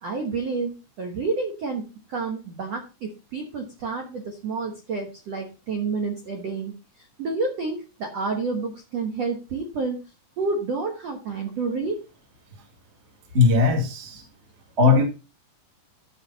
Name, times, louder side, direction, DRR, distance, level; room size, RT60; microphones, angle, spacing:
voice 1, 0.0-6.7 7.2-10.0 10.4-12.0, right 4 dB, 70° right, 3 dB, 1.5 m, -29 dB
voice 2, 13.3-14.2 14.8-15.0, left 4 dB, 35° right, 2 dB, 1.0 m, -18 dB
13.5 x 5.1 x 4.0 m, 0.30 s
omnidirectional pair, 4.9 m